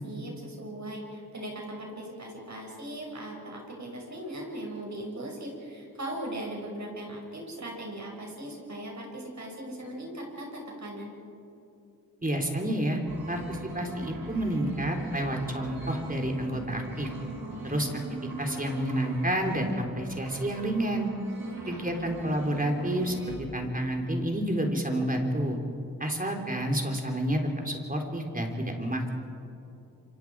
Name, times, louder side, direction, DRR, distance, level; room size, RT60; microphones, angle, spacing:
voice 1, 0.0-11.1 21.3-21.8, right 1 dB, 55° right, 0 dB, 6.0 m, -39 dB
voice 2, 12.2-13.0 13.3-17.1 17.6-18.0 18.4-21.1 21.7-25.6 26.0-29.1, right 1 dB, 25° right, 2 dB, 3.6 m, -29 dB
sound 1, 13.1-23.4, right 2 dB, 85° right, 6.1 m, -41 dB
28.5 x 25.0 x 4.8 m, 2.7 s
cardioid pair, 60°, 35 cm